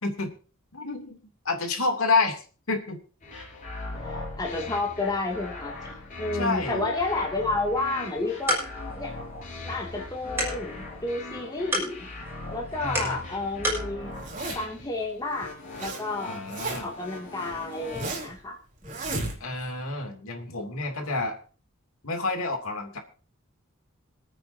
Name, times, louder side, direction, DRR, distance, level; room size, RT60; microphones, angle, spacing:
voice 1, 0.0-0.3 0.7-1.2 1.4-2.4 2.7-3.0 6.4-6.9 12.8-13.2 16.2-16.9 19.4-21.4 22.0-23.0, left 3 dB, 75° left, 3 dB, 2.8 m, -28 dB
sound 1, 3.2-18.1, left 2 dB, 40° left, 6.3 m, -40 dB
voice 2, 4.0-5.7 6.2-8.6 9.0-9.1 9.6-12.1 12.5-14.1 14.5-15.5 15.8-16.4 16.8-18.6 18.8-19.0, left 2 dB, 20° left, -2 dB, 2.5 m, -30 dB
sound 2, 8.0-13.9, equal, 10° right, 6.4 m, -34 dB
Zipper (clothing), 14.1-14.8 15.4-16.0 16.3-17.0 17.5-18.4 18.8-19.7, right 2 dB, 40° right, 3.7 m, -34 dB
26.5 x 9.0 x 2.8 m, 0.38 s
head